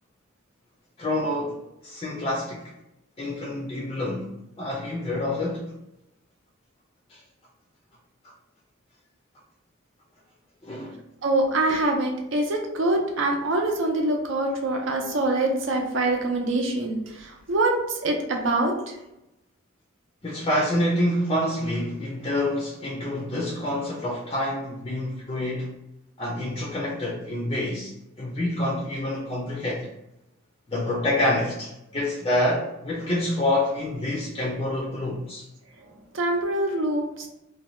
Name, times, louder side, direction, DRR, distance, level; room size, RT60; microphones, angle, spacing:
voice 1, 1.0-2.6 3.2-4.3 4.6-5.6 7.1-7.2 10.6-10.9 20.2-25.7 26.2-27.9 28.2-29.9 30.7-35.5, left 1 dB, 25° left, 0.4 m, -27 dB
voice 2, 11.2-17.7 18.0-18.7 36.1-37.3, right 2 dB, 65° right, 0.5 m, -24 dB
2.7 x 2.2 x 3.0 m
head